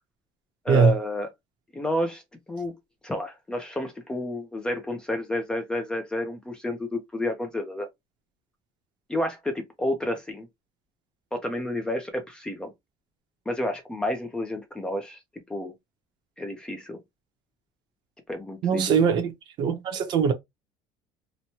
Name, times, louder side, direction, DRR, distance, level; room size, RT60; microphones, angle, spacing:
voice 1, 0.6-1.3 1.7-2.2 2.5-2.8 3.0-7.9 9.1-10.5 11.3-12.7 13.5-15.2 15.5-15.7 16.4-17.0 18.3-19.2, left 1 dB, 10° left, 0.4 m, -30 dB
voice 2, 18.6-19.3 19.6-20.3, right 6 dB, 45° right, 0.7 m, -21 dB
3.0 x 2.1 x 2.7 m
cardioid pair, 165°, 11 cm